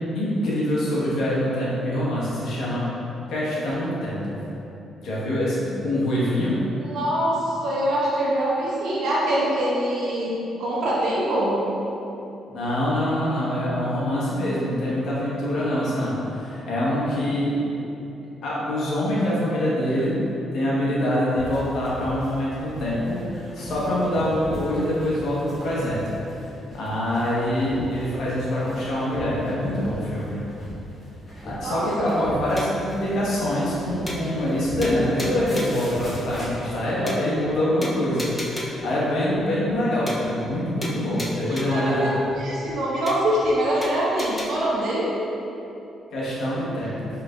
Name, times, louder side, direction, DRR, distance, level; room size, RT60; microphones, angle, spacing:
voice 1, 0.1-2.8 3.3-4.4 5.0-5.6 5.8-6.6 12.5-17.6 18.4-20.1 20.5-26.0 26.7-30.4 31.4-42.1 46.1-47.1, left 1 dB, 75° left, -7 dB, 1.1 m, -25 dB
voice 2, 6.8-10.3 10.6-11.6 31.6-32.2 41.4-45.1, right 1 dB, 70° right, -7 dB, 1.1 m, -24 dB
sound 1, 21.3-36.9, equal, 35° left, 1.4 m, -38 dB
sound 2, 32.6-32.9 33.3-33.4 33.7-33.8 34.1-34.6 34.8-35.9 36.3-36.4 36.7-36.8 37.1-37.5 37.8-38.9 39.3-39.4 39.7-39.8 40.1-40.6 40.8-41.9 42.3-42.4 42.7-42.8 43.1-43.5 43.8-44.5, left 1 dB, 15° left, 0.6 m, -34 dB
4.6 x 3.2 x 2.4 m, 2.9 s
cardioid pair, 90°, 0 cm